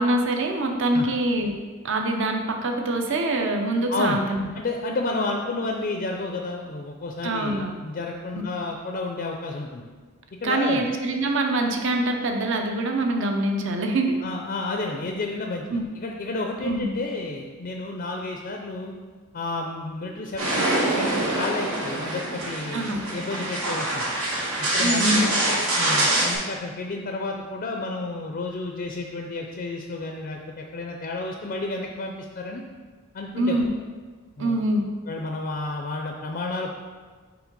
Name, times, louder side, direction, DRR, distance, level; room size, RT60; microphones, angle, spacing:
voice 1, 0.0-1.5 1.8-4.5 7.2-7.7 10.4-14.1 15.7-15.8 16.6-16.9 22.7-23.0 24.8-25.2 33.4-33.7 34.4-34.8, right 1 dB, 60° right, 3 dB, 0.7 m, -24 dB
voice 2, 3.9-4.2 4.5-9.8 10.4-10.9 14.2-15.7 16.0-18.9 19.3-24.1 24.6-25.3 25.7-32.6 33.1-33.6 34.4-34.6 35.1-36.8, left 2 dB, 40° left, 2 dB, 0.4 m, -31 dB
sound 1, 20.4-26.4, right 1 dB, 85° right, 1.7 m, -25 dB
4.9 x 3.9 x 5.2 m, 1.4 s
head